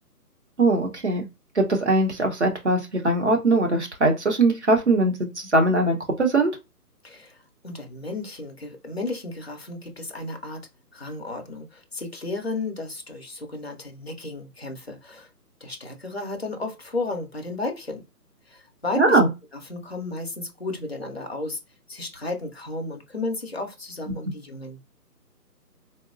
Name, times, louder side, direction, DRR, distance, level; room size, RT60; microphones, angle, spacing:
voice 1, 0.6-1.2 1.5-6.5 19.0-19.3, right 2 dB, 45° right, 0.7 m, -21 dB
voice 2, 7.0-10.6 10.9-15.3 15.6-18.0 18.5-19.2 19.5-21.6 21.9-24.8, left 2 dB, 40° left, 0.5 m, -33 dB
3.9 x 2.0 x 2.4 m
hypercardioid pair, 175°, 48 cm